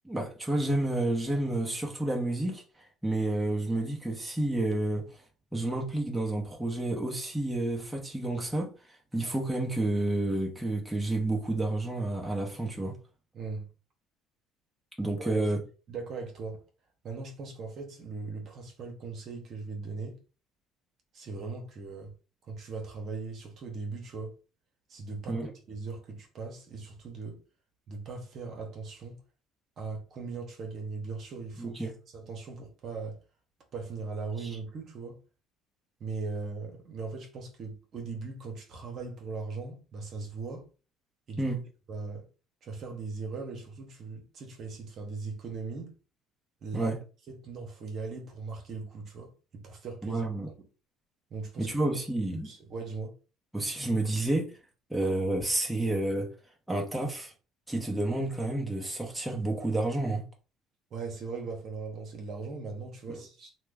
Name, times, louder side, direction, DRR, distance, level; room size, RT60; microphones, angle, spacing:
voice 1, 0.0-2.6 3.0-5.1 5.5-8.7 9.1-13.0 15.0-15.6 25.3-25.5 31.6-31.9 34.4-34.6 41.4-41.6 46.7-47.0 50.0-50.5 51.6-52.5 53.5-54.5 54.9-56.3 56.7-57.3 57.7-60.2 63.1-63.2, right 2 dB, 5° right, 1.0 m, -30 dB
voice 2, 13.3-13.7 15.2-15.4 15.9-16.6 17.0-20.2 21.1-22.1 22.5-24.3 24.9-27.4 27.9-29.2 29.8-33.2 33.7-35.2 36.0-40.7 41.3-41.5 41.9-42.2 42.6-45.9 46.6-46.9 47.3-50.2 51.3-51.7 52.4-53.1 60.9-63.6, right 4 dB, 55° right, 1.0 m, -39 dB
2.9 x 2.2 x 3.5 m
supercardioid pair, 80°, 0 cm